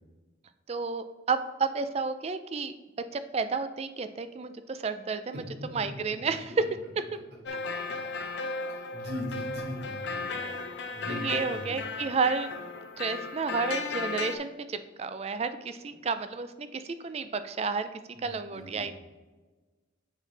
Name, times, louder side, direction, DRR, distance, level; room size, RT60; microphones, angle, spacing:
voice 1, 0.7-2.7 3.1-5.4 5.7-6.6 11.1-12.5 13.0-17.9 18.2-18.9, right 4 dB, 30° right, 11 dB, 0.3 m, -31 dB
voice 2, 5.3-5.8 6.1-6.2 6.5-6.6 8.7-10.3 10.9-11.8 18.1-18.8, left 1 dB, 55° right, 0 dB, 1.5 m, -39 dB
sound 1, 7.5-14.4, left 3 dB, 65° left, 0.6 m, -35 dB
7.3 x 5.7 x 3.3 m, 1.3 s
head